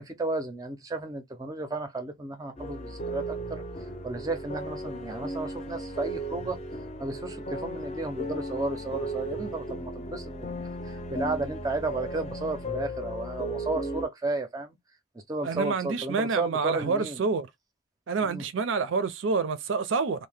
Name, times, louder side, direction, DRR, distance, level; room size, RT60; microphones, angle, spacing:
voice 1, 0.0-3.6 4.0-6.6 7.0-14.8 15.3-17.2 18.3-18.4, right 2 dB, 20° right, 0.5 m, -33 dB
sound 1, 2.6-14.1, right 1 dB, 35° left, 0.6 m, -36 dB
voice 2, 15.4-17.5 18.1-20.3, right 4 dB, 75° right, 0.4 m, -28 dB
2.7 x 2.1 x 3.3 m
head